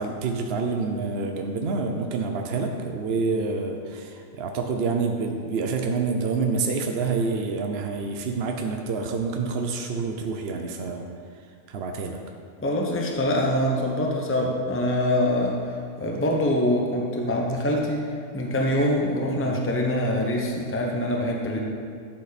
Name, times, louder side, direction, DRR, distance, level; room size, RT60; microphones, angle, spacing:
voice 1, 0.0-11.0 11.7-12.2 19.4-19.6, right 4 dB, 50° right, 3 dB, 0.9 m, -27 dB
voice 2, 12.6-15.6 16.0-18.1 18.3-21.6, left 1 dB, 10° left, 0 dB, 0.9 m, -24 dB
12.5 x 8.0 x 4.2 m, 2.2 s
omnidirectional pair, 1.5 m